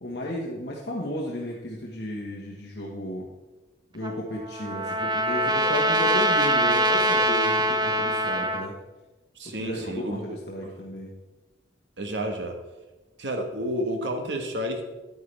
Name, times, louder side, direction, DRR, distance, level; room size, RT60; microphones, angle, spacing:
voice 1, 0.0-3.3 3.9-8.7 9.4-11.1, equal, 65° left, -4 dB, 1.4 m, -33 dB
Trumpet, 4.0-8.7, right 1 dB, 25° right, 0.5 m, -23 dB
voice 2, 9.4-10.7 12.0-12.6 13.2-14.8, equal, 75° right, 4 dB, 1.4 m, -31 dB
9.6 x 9.5 x 3.4 m, 1.1 s
head